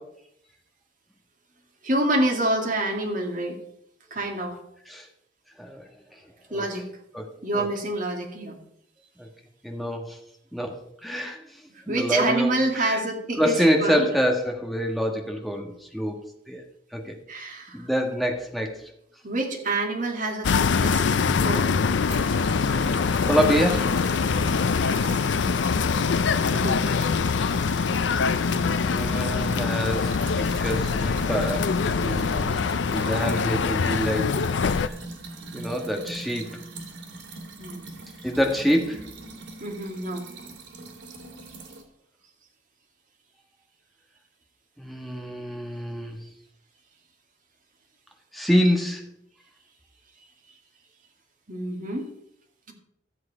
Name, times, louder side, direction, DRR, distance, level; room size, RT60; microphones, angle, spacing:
voice 1, 1.8-3.6 4.1-4.6 6.5-6.9 7.4-8.6 11.9-14.0 17.3-17.9 19.2-21.0 21.4-21.7 26.5-26.8 37.6-37.9 39.6-40.3 51.5-52.1, right 2 dB, 45° right, 1 dB, 2.1 m, -27 dB
voice 2, 9.6-10.2 10.5-10.8 11.0-11.4 11.9-12.5 12.8-13.0 13.4-16.2 16.5-16.6 16.9-17.2 17.7-18.8 22.9-23.9 28.8-31.7 32.0-34.4 34.8-34.9 35.5-36.6 38.2-39.0 44.8-46.2 48.3-49.0, equal, ahead, 1 dB, 1.5 m, -26 dB
sound 1, 20.4-34.9, left 5 dB, 80° left, 0.5 m, -24 dB
sound 2, 22.1-41.8, right 2 dB, 90° right, 2.2 m, -41 dB
13.0 x 7.8 x 5.0 m, 0.75 s
head